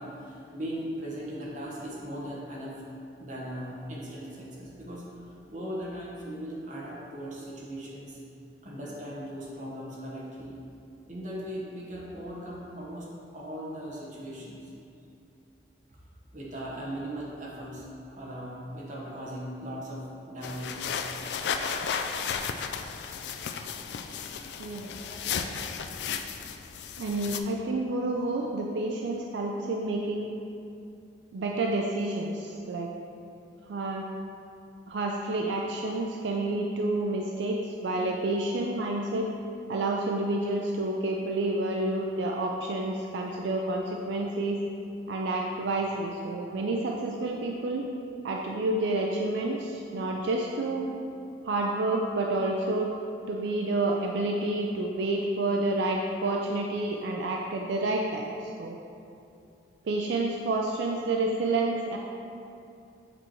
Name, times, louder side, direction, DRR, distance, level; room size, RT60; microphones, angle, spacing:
voice 1, 0.0-2.8 3.2-8.2 8.6-10.5 11.1-14.7 15.9-16.0 16.3-20.9 25.0-25.2, equal, 40° right, -5 dB, 1.1 m, -38 dB
sound 1, 20.4-27.4, left 6 dB, 70° left, 0.3 m, -34 dB
voice 2, 24.6-24.9 27.0-30.3 31.3-32.9 33.7-34.0 34.9-39.3 39.7-44.6 45.1-47.8 48.2-50.9 51.4-52.9 53.3-58.8 59.9-62.0, right 2 dB, 75° right, 0 dB, 0.4 m, -29 dB
7.6 x 4.4 x 3.1 m, 2.6 s
head